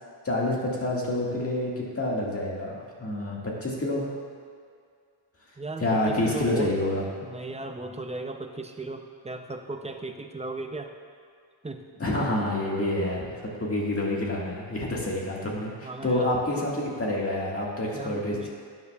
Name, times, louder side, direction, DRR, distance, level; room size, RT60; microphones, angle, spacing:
voice 1, 0.2-4.1 5.8-7.0 12.0-18.5, left 1 dB, 30° left, -3 dB, 1.8 m, -28 dB
voice 2, 5.6-6.7 7.2-10.9 11.6-11.8 15.8-16.4 17.9-18.5, right 2 dB, 15° right, 5 dB, 0.5 m, -36 dB
12.0 x 9.6 x 2.3 m, 2.2 s
wide cardioid pair, 120°, 49 cm